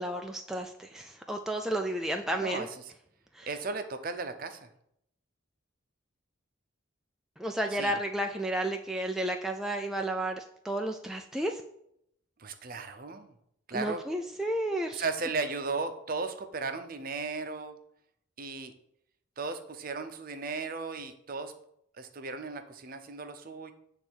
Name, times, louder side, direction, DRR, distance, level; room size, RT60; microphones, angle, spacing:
voice 1, 0.0-2.7 3.3-3.5 7.4-11.6 13.7-15.0, right 1 dB, ahead, 2 dB, 0.3 m, -32 dB
voice 2, 2.4-2.9 3.5-4.7 7.7-8.0 12.4-13.3 13.7-14.0 14.9-17.8 18.4-18.7 19.4-21.5 22.0-23.7, right 4 dB, 45° right, 8 dB, 0.6 m, -36 dB
8.4 x 3.3 x 6.2 m, 0.74 s
head